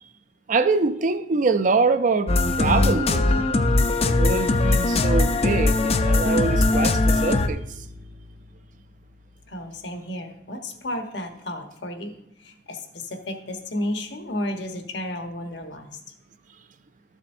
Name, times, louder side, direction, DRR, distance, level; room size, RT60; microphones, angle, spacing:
voice 1, 0.5-2.3 2.6-3.5 4.0-7.6, right 4 dB, 45° right, 11 dB, 0.5 m, -24 dB
sound 1, 2.3-7.5, left 2 dB, 35° left, 0.5 m, -20 dB
Bowed string instrument, 6.6-9.7, left 1 dB, 70° right, 0.8 m, -38 dB
voice 2, 9.5-12.1 12.4-15.9, left 1 dB, 65° left, 5 dB, 1.2 m, -32 dB
13.5 x 7.1 x 2.6 m, 0.77 s
head